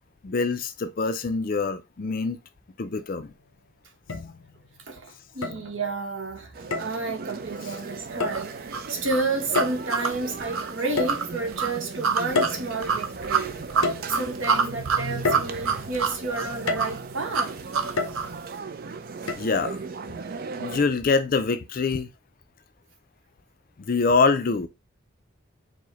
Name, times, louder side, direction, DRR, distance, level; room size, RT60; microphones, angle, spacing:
voice 1, 0.2-2.4 2.8-3.3 19.4-19.8 20.6-22.1 23.9-24.7, left 4 dB, 40° left, 0.4 m, -24 dB
sound 1, 3.0-3.1 4.1-4.7 5.4-6.0 6.7-7.0 8.2-8.5 9.6-10.1 11.0-11.7 12.4-13.2 13.8-14.5 15.2-16.0 16.7-17.2 18.0-18.6 19.3-19.4, left 3 dB, 90° left, 0.6 m, -29 dB
voice 2, 4.9-13.6 14.1-17.6, right 3 dB, 65° right, 1.1 m, -31 dB
sound 2, 6.5-20.8, right 4 dB, 45° right, 0.4 m, -37 dB
sound 3, 8.3-18.4, right 5 dB, 80° right, 0.7 m, -28 dB
4.7 x 2.1 x 3.9 m
head